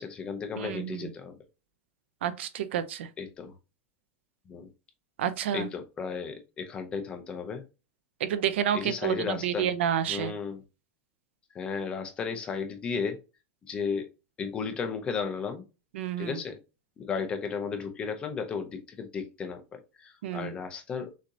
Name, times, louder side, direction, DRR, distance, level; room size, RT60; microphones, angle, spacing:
voice 1, 0.0-1.3 3.2-3.5 4.5-4.7 5.5-7.6 8.7-9.7 10.1-10.6 11.5-13.2 13.7-14.1 14.4-15.6 16.2-16.6 17.0-21.1, left 5 dB, 15° left, 0.6 m, -34 dB
voice 2, 0.6-1.1 2.2-3.1 5.2-5.7 8.2-10.3 15.9-16.4 20.2-20.5, right 10 dB, 75° right, 0.7 m, -29 dB
6.3 x 2.8 x 2.6 m
supercardioid pair, 170°, 6 cm